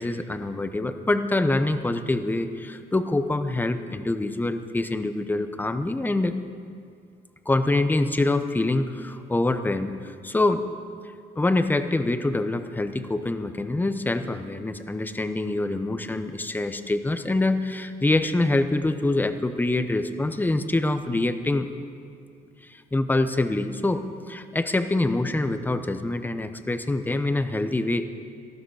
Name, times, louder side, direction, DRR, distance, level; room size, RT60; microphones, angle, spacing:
voice 1, 0.0-6.3 7.5-10.7 11.4-21.7 22.6-28.1, left 2 dB, 10° left, 10 dB, 0.8 m, -25 dB
18.5 x 14.0 x 4.9 m, 2.4 s
cardioid pair, 110°, 17 cm